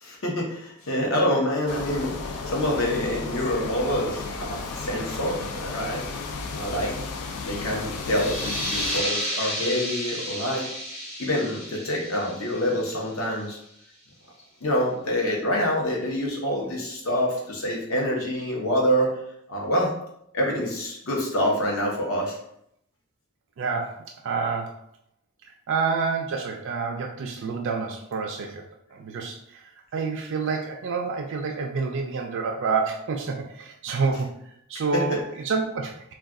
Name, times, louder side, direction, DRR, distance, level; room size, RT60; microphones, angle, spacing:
voice 1, 0.0-6.1 6.5-7.0 7.4-10.7 11.2-13.6 14.6-19.2 19.5-19.9 20.3-22.4 34.9-35.2, equal, 60° left, -1 dB, 0.8 m, -26 dB
sound 1, 1.7-9.0, left 4 dB, 80° left, 0.4 m, -34 dB
sound 2, 8.0-13.4, equal, 30° left, 1.0 m, -32 dB
voice 2, 23.6-24.8 25.7-28.6 28.9-29.6 29.9-34.3 34.7-36.1, right 4 dB, 55° right, 1 dB, 0.3 m, -28 dB
2.3 x 2.3 x 3.6 m, 0.74 s
head